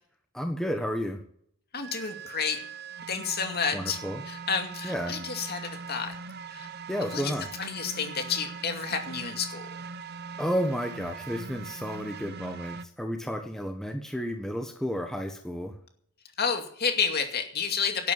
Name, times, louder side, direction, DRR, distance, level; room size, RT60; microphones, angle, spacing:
voice 1, 0.3-1.2 3.7-4.2 4.8-5.1 6.9-7.5 10.4-15.7, equal, ahead, 4 dB, 1.3 m, -32 dB
voice 2, 1.7-2.7 3.1-6.1 6.5-6.7 7.1-9.7 16.4-18.1, left 6 dB, 50° left, 5 dB, 2.4 m, -30 dB
sound 1, 1.8-12.9, right 5 dB, 50° right, 0.7 m, -41 dB
11.5 x 9.7 x 8.9 m, 0.66 s
head